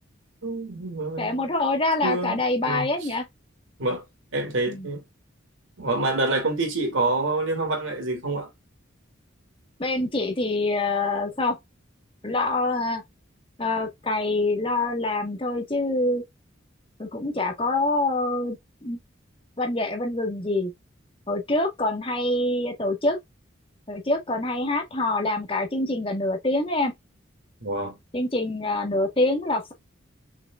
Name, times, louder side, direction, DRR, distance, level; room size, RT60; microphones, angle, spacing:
voice 1, 0.4-1.5 2.0-3.1 3.8-4.1 4.3-5.0 5.8-8.5 27.6-28.0, right 2 dB, 85° right, 2.4 m, -27 dB
voice 2, 1.2-3.2 4.7-4.9 9.8-11.6 12.2-13.0 13.6-16.2 17.0-18.6 18.8-19.0 19.6-20.7 21.3-23.2 23.9-26.9 28.1-29.7, left 2 dB, 25° left, 1.5 m, -25 dB
6.0 x 3.5 x 2.3 m
head